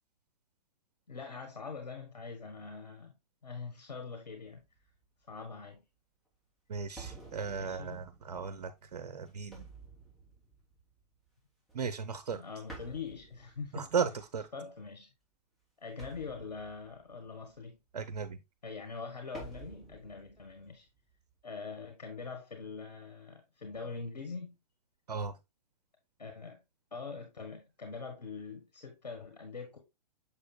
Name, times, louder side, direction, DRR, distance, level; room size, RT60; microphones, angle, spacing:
voice 1, 1.1-3.1 3.4-4.6 5.3-5.8 7.6-8.0 12.3-13.9 14.5-15.1 15.8-17.8 18.6-20.9 21.4-24.5 26.2-26.6 26.9-29.8, left 5 dB, 85° left, 1.6 m, -43 dB
sound 1, 4.4-5.0 5.7-5.8 7.0-11.3 11.7-12.3 12.7-14.2 16.0-17.7 19.3-21.4, right 3 dB, ahead, 3.2 m, -52 dB
voice 2, 6.7-9.7 11.7-12.4 13.7-14.5 17.9-18.4 25.1-25.3, right 6 dB, 75° right, 0.9 m, -36 dB
6.9 x 6.7 x 2.2 m
hypercardioid pair, 120°, 21 cm